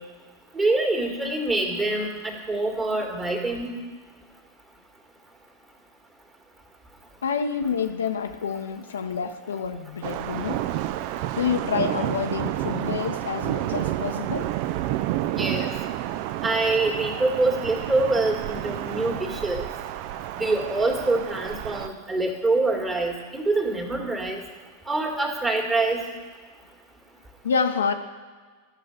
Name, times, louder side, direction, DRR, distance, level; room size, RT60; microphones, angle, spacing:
voice 1, 0.5-3.7 15.3-15.7 16.4-19.6 20.4-24.4 24.9-26.0, right 2 dB, 15° right, 1 dB, 2.0 m, -25 dB
voice 2, 7.2-10.6 11.4-14.5 27.4-27.9, left 6 dB, 65° left, 7 dB, 0.7 m, -28 dB
sound 1, 10.0-21.9, right 13 dB, 45° right, 0.4 m, -30 dB
13.0 x 6.5 x 6.5 m, 1.5 s
figure-of-eight pair, 90°, 0 cm